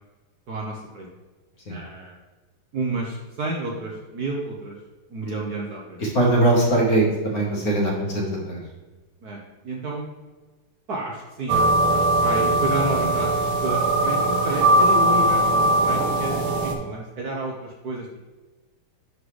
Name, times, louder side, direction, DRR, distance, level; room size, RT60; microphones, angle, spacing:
voice 1, 0.5-1.1 1.7-2.1 2.7-4.7 5.1-6.0 8.3-8.4 9.2-10.1 10.9-18.1, right 2 dB, 55° right, -1 dB, 1.2 m, -31 dB
voice 2, 6.0-8.6 16.7-16.8, right 2 dB, 45° left, -2 dB, 1.7 m, -21 dB
sound 1, 11.5-16.7, right 1 dB, 80° right, 1.6 m, -20 dB
11.0 x 4.0 x 3.2 m, 1.2 s
omnidirectional pair, 2.4 m